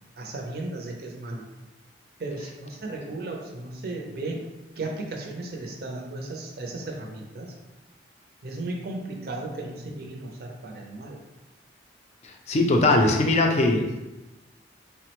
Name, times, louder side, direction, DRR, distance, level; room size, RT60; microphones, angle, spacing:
voice 1, 0.2-1.4 2.2-4.4 4.8-7.5 8.4-11.2, right 2 dB, 55° right, 1 dB, 0.5 m, -35 dB
voice 2, 12.2-13.9, left 2 dB, 35° left, 2 dB, 0.3 m, -21 dB
3.5 x 2.0 x 2.9 m, 1.1 s
head